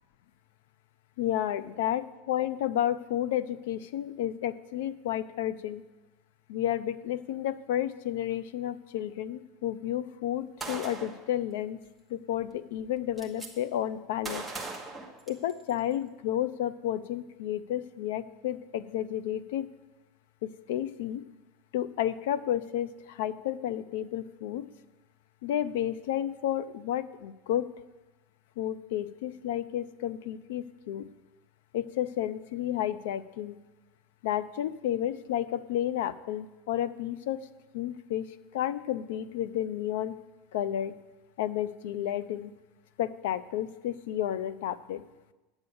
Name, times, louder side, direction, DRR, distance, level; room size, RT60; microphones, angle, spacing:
voice 1, 1.2-5.8 6.5-11.8 12.1-14.4 15.3-19.7 20.4-21.2 21.7-24.7 25.4-27.7 28.6-31.1 31.7-33.6 34.2-37.5 37.7-40.1 40.5-40.9 41.4-42.5 43.0-45.0, left 11 dB, 75° left, 15 dB, 0.6 m, -31 dB
Gunshot gunfire, 10.6-11.2 12.4-12.5 12.8-13.5 14.2-15.7, right 3 dB, ahead, 1.1 m, -39 dB
9.4 x 8.1 x 7.1 m, 1.1 s
supercardioid pair, 180°, 0 cm